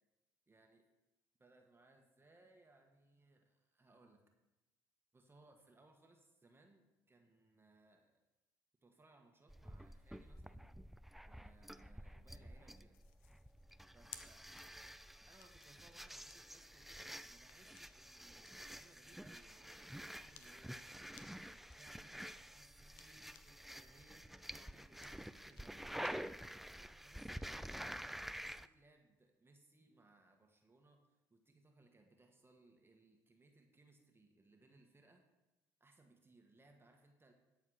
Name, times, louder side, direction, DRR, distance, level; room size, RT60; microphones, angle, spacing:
voice 1, 0.5-0.9 1.4-4.2 5.1-8.2 8.8-10.7 11.3-13.0 13.9-14.4 15.3-20.9 21.8-26.3 26.6-35.2 35.8-37.3, right 2 dB, 20° right, 3 dB, 1.5 m, -67 dB
sound 1, 9.5-28.7, equal, ahead, 0.4 m, -50 dB
sound 2, 12.9-23.7 24.1-27.3, left 10 dB, 80° left, 0.7 m, -63 dB
12.5 x 4.9 x 6.3 m, 1.0 s
hypercardioid pair, 65°, 10 cm